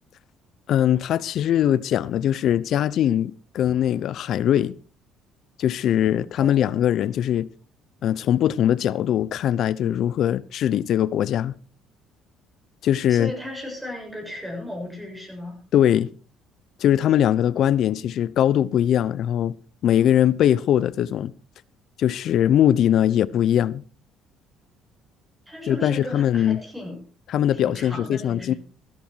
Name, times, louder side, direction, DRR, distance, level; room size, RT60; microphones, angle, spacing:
voice 1, 0.7-4.7 5.6-7.5 8.0-11.5 12.8-13.3 15.7-16.1 16.8-19.5 19.8-21.3 22.0-23.8 25.7-26.6 27.3-28.5, left 10 dB, 65° left, 0.8 m, -21 dB
voice 2, 6.4-6.7 13.1-15.6 25.5-27.0 27.5-28.6, left 1 dB, 10° right, 7.2 m, -35 dB
15.0 x 13.0 x 4.6 m
supercardioid pair, 85°, 0 cm